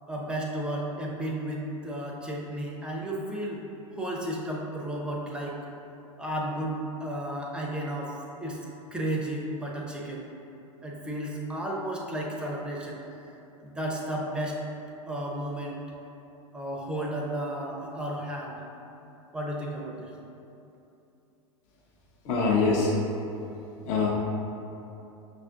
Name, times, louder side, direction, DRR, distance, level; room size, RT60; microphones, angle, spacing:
voice 1, 0.1-3.6 3.9-5.6 6.2-8.6 8.9-10.3 10.8-13.0 13.6-14.6 15.1-15.8 16.5-18.6 19.3-20.1, right 1 dB, 5° right, -2 dB, 0.5 m, -33 dB
voice 2, 22.2-22.9 23.8-24.1, left 4 dB, 45° left, -4 dB, 0.6 m, -23 dB
6.0 x 2.4 x 2.3 m, 2.8 s
figure-of-eight pair, 90°, 18 cm